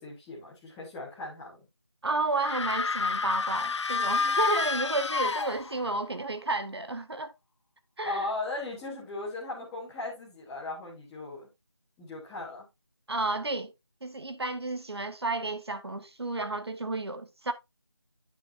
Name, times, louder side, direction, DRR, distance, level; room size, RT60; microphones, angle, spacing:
voice 1, 0.0-1.6 8.0-11.5 12.0-12.7, left 2 dB, 5° left, 1.0 m, -37 dB
voice 2, 2.0-7.3 8.0-8.3 13.1-13.7 14.0-17.5, right 2 dB, 65° right, 1.3 m, -31 dB
sound 1, 2.3-6.0, left 4 dB, 90° left, 0.4 m, -29 dB
9.0 x 7.4 x 2.6 m
figure-of-eight pair, 175°, 15 cm